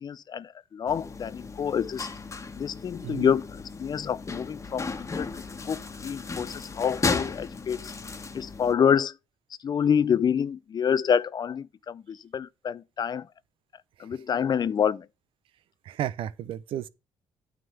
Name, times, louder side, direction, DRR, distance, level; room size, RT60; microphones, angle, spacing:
voice 1, 0.0-2.1 2.6-3.5 3.8-4.9 5.2-5.4 5.7-7.9 8.3-9.1 9.6-13.3 14.0-15.0, left 7 dB, 45° left, 0.5 m, -27 dB
sound 1, 0.9-8.7, left 4 dB, 30° left, 1.3 m, -35 dB
voice 2, 15.8-16.9, right 11 dB, 70° right, 0.6 m, -33 dB
9.3 x 3.7 x 6.9 m
supercardioid pair, 60°, 9 cm